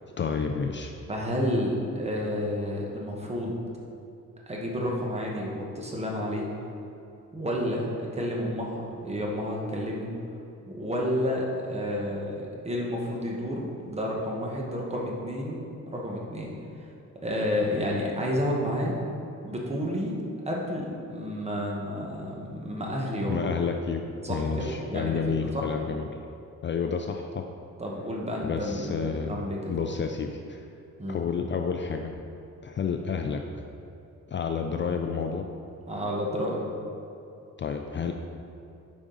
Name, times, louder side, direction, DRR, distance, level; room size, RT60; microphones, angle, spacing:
voice 1, 0.2-0.9 23.3-24.0 24.3-26.1 26.6-27.4 28.4-30.6 31.1-32.1 32.6-33.4 34.3-35.5 37.6-38.1, left 6 dB, 40° left, 4 dB, 0.4 m, -30 dB
voice 2, 1.1-3.6 4.5-6.5 7.3-10.1 10.7-16.6 17.2-18.9 19.4-23.5 24.2-25.2 25.5-25.6 27.8-29.6 31.0-31.2 35.9-36.6, equal, 20° right, -2 dB, 1.2 m, -30 dB
8.7 x 5.0 x 3.9 m, 2.7 s
wide cardioid pair, 130°, 30 cm